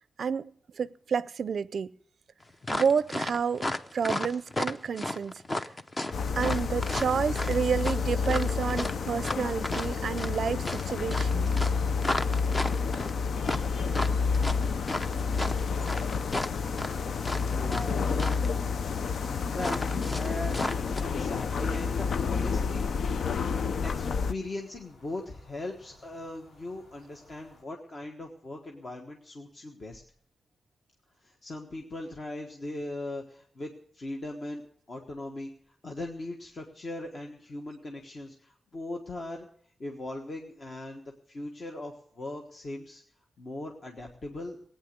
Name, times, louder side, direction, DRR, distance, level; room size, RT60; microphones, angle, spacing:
voice 1, 0.2-1.9 2.7-3.6 3.9-5.7 6.3-11.5, right 6 dB, 55° right, 0.5 m, -30 dB
sound 1, 2.6-17.9 18.2-18.5 19.6-21.0, left 1 dB, 20° left, 0.7 m, -33 dB
sound 2, 6.1-24.3, left 5 dB, 60° left, 0.6 m, -29 dB
sound 3, 9.6-27.6, left 2 dB, 85° left, 4.0 m, -59 dB
voice 2, 17.5-18.8 19.5-20.6 21.0-22.9 23.8-30.0 31.2-34.6 34.9-39.5 39.8-43.0 43.4-44.6, left 2 dB, 40° left, 1.4 m, -39 dB
18.0 x 9.1 x 6.6 m
wide cardioid pair, 165°, 0 cm